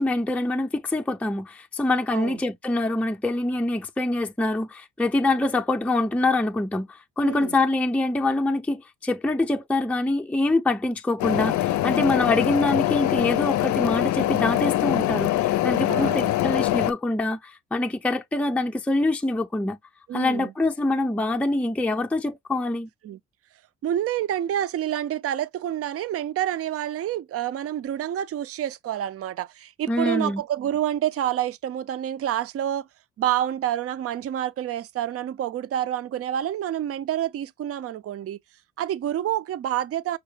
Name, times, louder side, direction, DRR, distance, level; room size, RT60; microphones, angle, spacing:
voice 1, 0.0-19.8 20.1-22.9 29.9-30.4, left 2 dB, 5° left, 0.5 m, -25 dB
voice 2, 7.2-7.5 15.9-16.3 20.1-20.5 23.0-23.2 23.8-32.9 33.2-38.4 38.8-40.2, right 11 dB, 50° right, 0.5 m, -28 dB
sound 1, 11.2-16.9, left 14 dB, 70° left, 0.5 m, -23 dB
5.7 x 2.1 x 3.1 m
cardioid pair, 90°, 30 cm